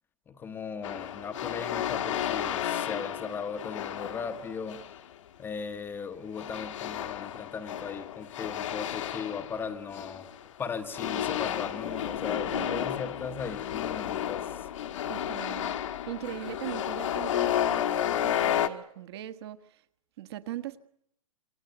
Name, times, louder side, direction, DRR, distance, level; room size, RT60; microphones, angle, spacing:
voice 1, 0.3-4.8 5.4-10.3 10.6-14.7, left 6 dB, 10° left, 8 dB, 1.0 m, -38 dB
sound 1, 0.8-5.0 6.4-10.5 10.9-18.7, left 10 dB, 65° left, 1.6 m, -32 dB
voice 2, 12.5-12.9 15.1-15.8 16.1-19.8 20.2-20.8, right 13 dB, 50° right, 10 dB, 1.5 m, -40 dB
27.0 x 23.0 x 8.0 m, 0.72 s
hypercardioid pair, 150°, 17 cm